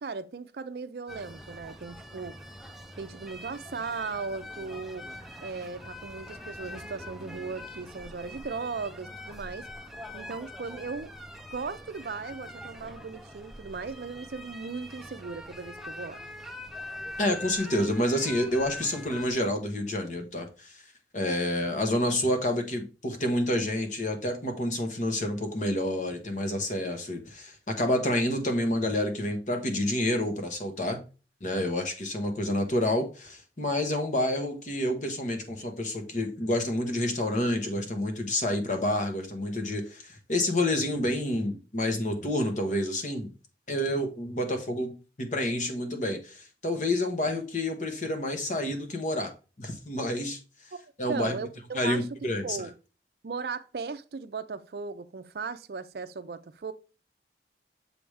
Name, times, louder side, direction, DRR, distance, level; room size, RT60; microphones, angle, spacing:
voice 1, 0.0-2.4 3.0-5.1 5.4-9.7 10.1-11.1 11.5-16.2 50.7-50.8 51.1-52.0 52.4-52.7 53.2-56.7, right 4 dB, 60° right, 0.4 m, -37 dB
sound 1, 1.1-19.3, left 1 dB, ahead, 0.4 m, -43 dB
voice 2, 17.2-20.8 21.1-31.0 31.4-43.3 43.7-49.3 49.6-50.4 51.0-51.4 51.7-52.6, left 1 dB, 45° left, 1.1 m, -29 dB
6.9 x 5.0 x 3.2 m
head